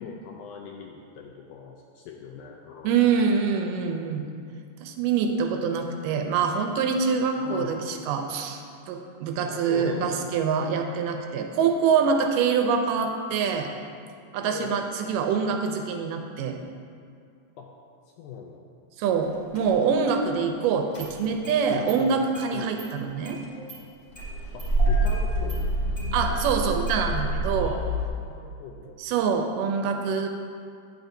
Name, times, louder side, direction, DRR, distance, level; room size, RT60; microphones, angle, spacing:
voice 1, 0.0-3.0 7.4-7.9 9.4-10.3 14.5-14.8 17.6-17.7 18.2-18.6 21.7-21.9 22.5-22.8 24.5-25.7 27.5-27.8 28.3-29.0 29.2-29.3, left 6 dB, 80° left, 0 dB, 1.8 m, -40 dB
voice 2, 2.8-4.2 4.8-8.6 8.9-13.7 14.3-16.6 19.0-23.4 26.1-27.7 29.0-30.3, right 6 dB, 80° right, 4 dB, 2.1 m, -25 dB
Engine starting, 19.5-19.6 20.9-21.6 21.9-22.0 22.3-22.5 22.8-22.9 23.2-23.8 24.1-28.1, right 1 dB, 30° left, 1.4 m, -27 dB
9.1 x 7.9 x 2.6 m, 2.3 s
omnidirectional pair, 3.9 m